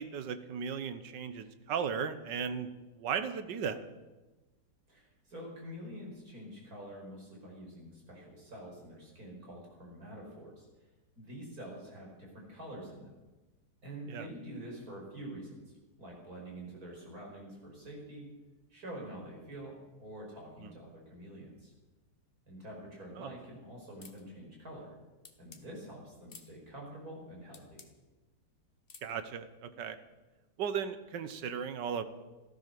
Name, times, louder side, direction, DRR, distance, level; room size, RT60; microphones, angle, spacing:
voice 1, 0.0-2.7 3.0-3.8 14.1-14.3 20.6-20.7 23.2-23.3 29.0-30.0 30.6-32.0, right 7 dB, 90° right, 11 dB, 1.7 m, -36 dB
voice 2, 4.9-10.7 11.2-13.1 13.8-15.7 16.0-18.2 18.7-21.7 22.5-24.9 25.4-27.8, right 1 dB, 55° right, -1 dB, 5.8 m, -47 dB
sound 1, 24.0-24.2 25.2-25.6 26.3-26.5 27.5-27.9 28.9-29.1, left 4 dB, 35° left, 1.4 m, -53 dB
15.5 x 13.5 x 6.8 m, 1.1 s
omnidirectional pair, 1.8 m